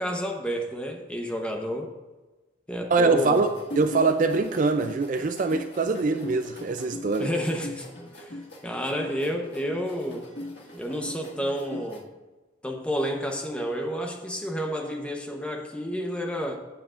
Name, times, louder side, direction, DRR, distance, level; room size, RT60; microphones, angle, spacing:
voice 1, 0.0-1.9 2.7-3.5 7.2-7.9 8.2-8.3 8.6-10.3 10.8-12.1 12.6-16.6, equal, 5° left, 2 dB, 0.9 m, -30 dB
voice 2, 2.9-3.5 3.8-7.3, right 3 dB, 40° right, 8 dB, 0.3 m, -23 dB
sound 1, 3.3-12.0, left 1 dB, 60° left, 1.7 m, -40 dB
14.5 x 8.7 x 2.5 m, 1.2 s
head